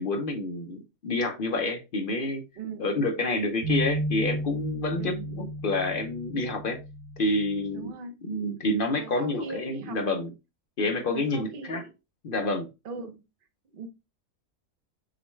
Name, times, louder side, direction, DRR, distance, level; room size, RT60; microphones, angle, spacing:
voice 1, 0.0-2.4 2.8-6.8 7.2-7.9 8.2-10.3 10.8-11.8 12.2-12.7, left 2 dB, 60° left, 0.5 m, -28 dB
voice 2, 2.6-2.9 5.0-5.5 7.7-8.2 9.0-10.0 11.1-11.9 12.8-13.2 13.7-13.9, right 4 dB, 45° right, 0.7 m, -39 dB
sound 1, 3.6-7.9, right 1 dB, 75° right, 1.1 m, -33 dB
6.1 x 2.2 x 3.1 m
omnidirectional pair, 1.6 m